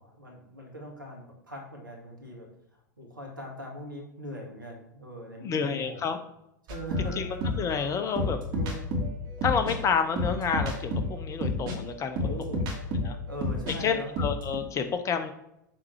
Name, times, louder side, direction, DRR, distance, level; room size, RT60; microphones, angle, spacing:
voice 1, 0.0-2.5 3.0-6.1 6.7-7.2 8.5-8.8 12.2-12.7 13.3-14.1, equal, 90° right, 1 dB, 1.9 m, -41 dB
voice 2, 5.4-6.2 7.2-7.3 7.6-8.4 9.4-12.2 13.0-13.2 13.7-15.3, left 6 dB, 30° left, 8 dB, 0.9 m, -29 dB
sound 1, 6.7-13.8 14.0-14.6, left 1 dB, 45° right, 2.3 m, -30 dB
7.6 x 3.8 x 4.8 m, 0.81 s
figure-of-eight pair, 85°, 11 cm